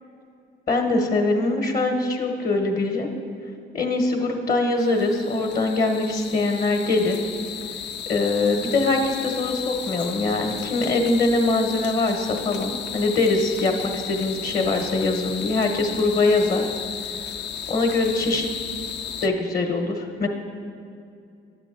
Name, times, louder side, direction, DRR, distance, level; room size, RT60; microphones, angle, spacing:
voice 1, 0.7-3.1 3.7-7.2 8.1-16.6 17.7-18.5 19.2-20.3, left 3 dB, 50° left, 3 dB, 0.9 m, -23 dB
sound 1, 4.8-19.3, left 8 dB, 65° left, 0.5 m, -34 dB
10.5 x 7.1 x 3.7 m, 2.4 s
cardioid pair, 90°, 20 cm